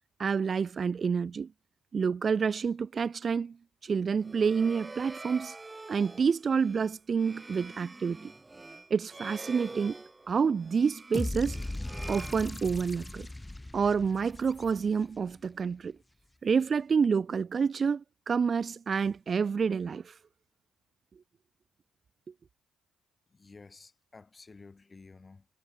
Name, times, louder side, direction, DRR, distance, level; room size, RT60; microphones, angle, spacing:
voice 1, 0.2-1.5 1.9-3.6 3.8-5.5 5.9-8.3 8.9-10.0 10.3-11.6 12.1-13.3 13.7-16.0 16.4-20.1, right 6 dB, 40° right, 0.8 m, -28 dB
sound 1, 4.1-13.1, right 2 dB, 20° right, 3.4 m, -46 dB
sound 2, 11.1-15.2, left 1 dB, 10° left, 0.5 m, -38 dB
voice 2, 23.3-25.5, left 4 dB, 30° left, 3.3 m, -52 dB
hypercardioid pair, 50°, 0 cm